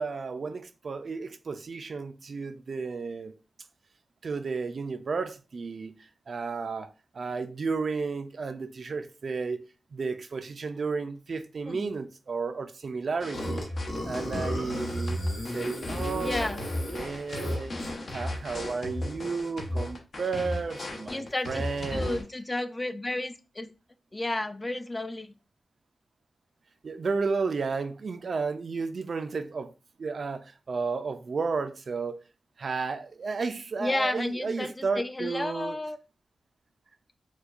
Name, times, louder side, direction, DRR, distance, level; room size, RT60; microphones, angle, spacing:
voice 1, 0.0-3.3 4.2-6.9 7.1-13.7 14.1-15.2 15.5-17.7 18.1-22.2 26.8-29.7 30.0-32.2 32.6-35.8, right 4 dB, 65° right, 0.3 m, -33 dB
sound 1, 13.2-22.2, left 1 dB, 65° left, 0.8 m, -35 dB
Burping eructation, 13.3-18.1, equal, 85° left, 1.2 m, -35 dB
voice 2, 16.2-16.6 21.1-21.6 21.9-23.7 24.1-25.3 33.8-36.0, left 2 dB, 25° left, 0.3 m, -32 dB
4.4 x 2.3 x 2.4 m
wide cardioid pair, 80°, 0 cm